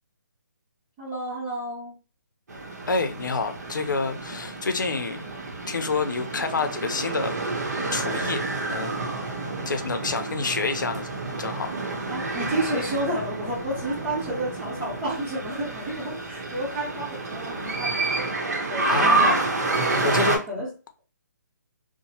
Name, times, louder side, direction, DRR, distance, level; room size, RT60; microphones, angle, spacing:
voice 1, 1.0-1.9 12.1-19.4 20.0-20.7, right 1 dB, 20° right, 0.9 m, -31 dB
sound 1, 2.5-20.4, right 3 dB, 60° right, 0.8 m, -29 dB
voice 2, 2.9-5.2 5.7-7.4 7.9-9.1 9.7-11.1 11.4-11.7 18.9-19.5 20.0-20.4, left 4 dB, 85° left, 0.5 m, -28 dB
2.9 x 2.1 x 2.8 m
hypercardioid pair, 165°, 10 cm